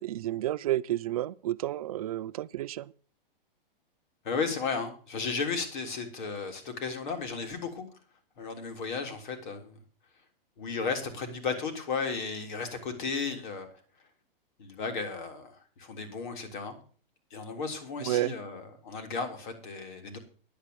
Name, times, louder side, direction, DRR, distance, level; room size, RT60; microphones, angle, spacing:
voice 1, 0.0-2.9 18.0-18.3, right 14 dB, 40° right, 0.5 m, -31 dB
voice 2, 4.2-7.8 8.4-9.7 10.6-13.7 14.6-16.8 17.3-20.2, left 5 dB, 55° left, 3.5 m, -34 dB
10.5 x 8.3 x 7.0 m
hypercardioid pair, 160°, 29 cm